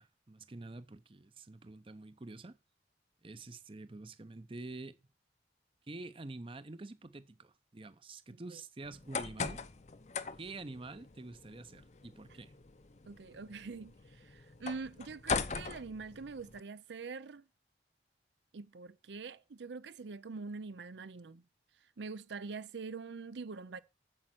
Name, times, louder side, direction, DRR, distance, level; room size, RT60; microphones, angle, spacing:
voice 1, 0.0-2.6 3.2-5.0 5.9-9.6 10.4-12.6, right 2 dB, 30° right, 0.6 m, -47 dB
sound 1, 8.8-16.6, left 5 dB, 40° left, 0.6 m, -41 dB
voice 2, 13.1-17.5 18.5-21.4 22.0-23.8, right 4 dB, 85° right, 0.6 m, -44 dB
8.7 x 7.6 x 6.1 m
head